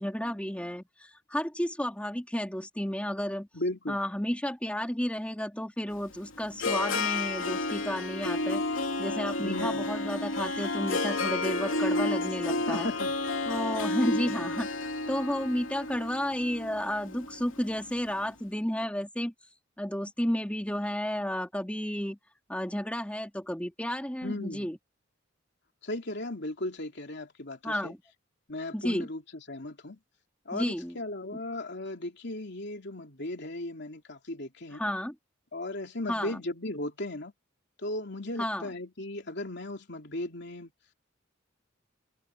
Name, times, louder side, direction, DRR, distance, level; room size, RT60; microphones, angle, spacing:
voice 1, 0.0-3.5 3.9-8.6 9.0-12.9 13.5-14.7 15.1-19.3 19.8-22.2 22.5-24.8 27.6-28.0 28.7-29.1 30.5-31.0 34.7-35.1 36.1-36.4 38.4-38.7, equal, 5° left, 2.7 m, -32 dB
voice 2, 3.5-4.0 9.4-9.9 12.6-13.1 14.0-14.5 24.2-24.7 25.8-27.9 28.5-29.2 29.5-30.0 30.4-34.8 35.5-37.3 37.8-40.7, left 1 dB, 60° left, 3.1 m, -36 dB
Harp, 5.9-18.1, left 2 dB, 80° left, 3.0 m, -31 dB
head